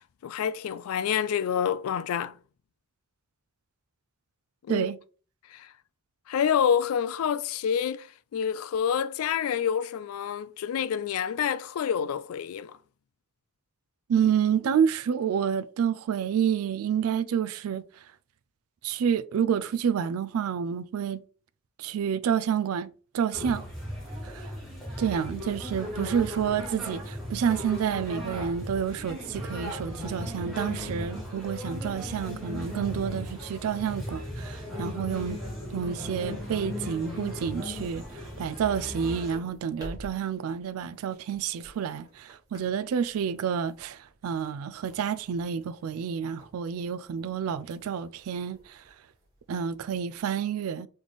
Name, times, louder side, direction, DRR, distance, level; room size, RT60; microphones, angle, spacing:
voice 1, 0.0-2.3 4.7-4.9 5.5-5.7 6.3-12.8, left 8 dB, 85° left, 0.3 m, -28 dB
voice 2, 14.1-17.8 18.8-21.2 21.8-23.6 24.2-24.5 25.0-35.4 35.7-48.8 49.5-50.9, right 8 dB, 85° right, 0.3 m, -29 dB
sound 1, 23.3-39.4, left 1 dB, ahead, 1.9 m, -37 dB
sound 2, 31.1-50.2, equal, 15° right, 1.4 m, -54 dB
4.1 x 3.2 x 3.2 m
head